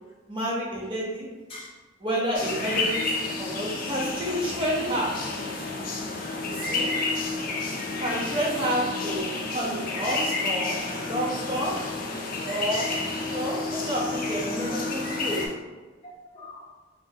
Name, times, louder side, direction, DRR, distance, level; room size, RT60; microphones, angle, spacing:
voice 1, 0.3-1.3 2.0-5.1 6.4-6.9 8.0-11.7 12.4-12.9 13.2-15.4, equal, 25° right, -4 dB, 0.7 m, -29 dB
sound 1, 2.3-15.5, left 3 dB, 45° left, 0.4 m, -30 dB
voice 2, 7.4-7.8 8.7-9.1 11.4-11.5 16.0-16.7, left 1 dB, 30° left, -5 dB, 0.8 m, -46 dB
3.4 x 2.1 x 2.7 m, 1.3 s
head